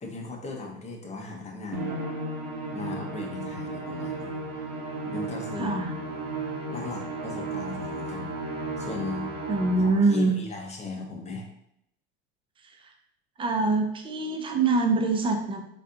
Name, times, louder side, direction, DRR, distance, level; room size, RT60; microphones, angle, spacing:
voice 1, 0.0-1.9 2.7-4.3 5.0-5.7 6.7-8.3 8.8-9.3 9.8-11.5, left 3 dB, 20° left, 1 dB, 0.7 m, -37 dB
Musical instrument, 1.7-10.2, right 2 dB, 60° right, 0.8 m, -34 dB
voice 2, 5.6-5.9 9.5-10.4 12.6-12.9 13.4-15.6, right 3 dB, 15° right, 4 dB, 0.4 m, -24 dB
3.4 x 2.4 x 2.6 m, 0.78 s
hypercardioid pair, 95°, 31 cm